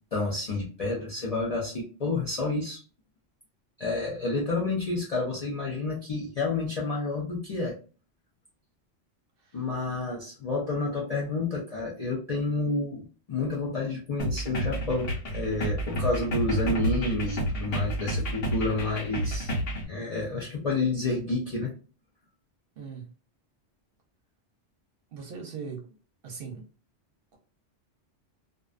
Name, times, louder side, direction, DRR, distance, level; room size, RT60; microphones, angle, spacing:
voice 1, 0.1-2.8 3.8-7.8 9.5-21.7, left 3 dB, 50° left, -4 dB, 0.4 m, -30 dB
sound 1, 14.2-19.8, equal, 80° left, 1.1 m, -30 dB
voice 2, 22.8-23.1 25.1-25.8 26.2-26.6, right 5 dB, 60° right, 1 dB, 0.7 m, -39 dB
2.5 x 2.2 x 2.4 m, 0.37 s
omnidirectional pair, 1.2 m